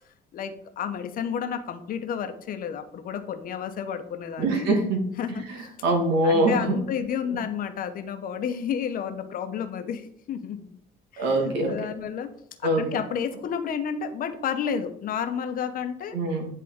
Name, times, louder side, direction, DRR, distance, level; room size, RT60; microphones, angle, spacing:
voice 1, 0.3-4.7 5.2-5.7 6.2-10.7 11.1-12.3 12.6-16.2, left 7 dB, 55° left, 9 dB, 0.8 m, -31 dB
voice 2, 4.4-5.1 5.8-6.8 11.2-11.8 12.6-12.8 16.1-16.5, right 1 dB, 90° right, 2 dB, 1.7 m, -23 dB
9.5 x 3.7 x 3.6 m, 0.68 s
cardioid pair, 110°, 17 cm